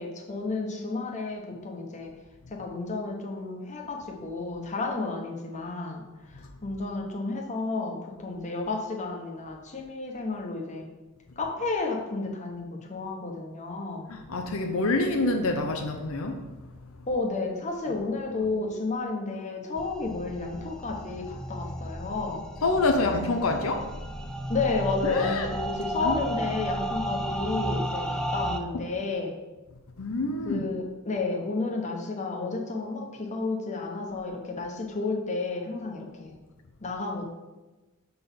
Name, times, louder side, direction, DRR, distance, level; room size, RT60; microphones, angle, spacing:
voice 1, 0.0-2.1 2.5-6.1 6.3-10.9 11.4-14.1 17.1-22.4 24.5-29.3 30.4-36.3 36.8-37.2, left 3 dB, 35° left, 0 dB, 1.0 m, -31 dB
voice 2, 14.1-16.3 18.4-18.5 22.6-23.9 25.0-25.5 26.0-26.2 30.0-30.6, left 2 dB, 85° left, 4 dB, 0.7 m, -26 dB
sound 1, 19.8-28.6, right 1 dB, 5° left, 0.4 m, -33 dB
6.7 x 4.0 x 5.5 m, 1.1 s
head